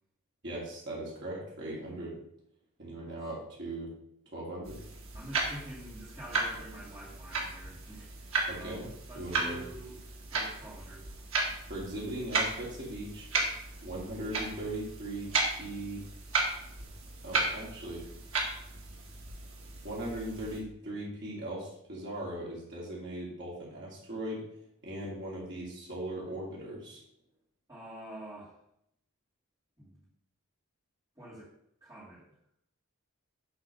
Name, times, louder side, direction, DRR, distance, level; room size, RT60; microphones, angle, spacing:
voice 1, 0.4-2.2 2.8-3.9 4.3-4.8 8.5-8.9 9.2-9.6 11.7-13.3 13.8-16.0 17.2-18.0 19.8-24.4 24.8-27.0, right 1 dB, 55° right, -6 dB, 2.6 m, -39 dB
sound 1, 4.6-20.6, right 3 dB, 70° right, 1.9 m, -35 dB
voice 2, 5.1-10.0 10.3-11.1 27.7-28.6 29.8-30.0 31.2-31.5 31.8-32.2, right 1 dB, 20° right, -11 dB, 2.6 m, -47 dB
8.1 x 3.9 x 6.6 m, 0.75 s
head